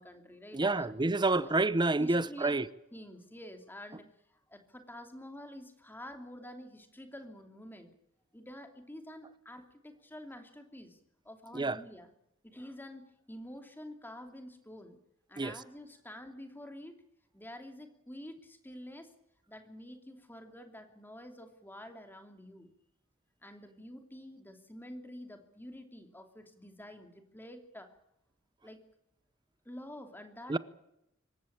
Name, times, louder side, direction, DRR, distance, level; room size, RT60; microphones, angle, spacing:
voice 1, 0.0-0.9 1.4-1.5 2.0-2.6 2.9-7.9 8.3-11.0 11.2-12.1 12.4-15.0 15.3-16.9 17.3-19.1 19.5-22.7 23.4-27.9 28.6-28.8 29.6-30.6, left 1 dB, 10° left, 2.9 m, -48 dB
voice 2, 0.5-2.6 11.5-11.8 15.4-15.6 30.5-30.6, right 2 dB, 20° right, 0.8 m, -28 dB
25.5 x 14.5 x 8.8 m
head